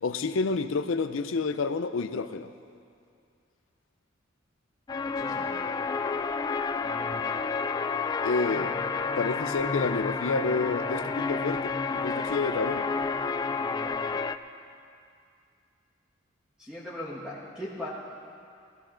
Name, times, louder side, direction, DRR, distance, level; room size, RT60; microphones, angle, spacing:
voice 1, 0.0-2.5 8.2-8.8 9.2-12.9, left 4 dB, 85° left, 10 dB, 0.5 m, -29 dB
sound 1, 4.9-14.4, left 4 dB, 20° left, 0.3 m, -30 dB
voice 2, 5.0-5.5 16.6-17.9, left 1 dB, 5° right, -7 dB, 1.3 m, -38 dB
16.5 x 15.0 x 3.9 m, 2.4 s
head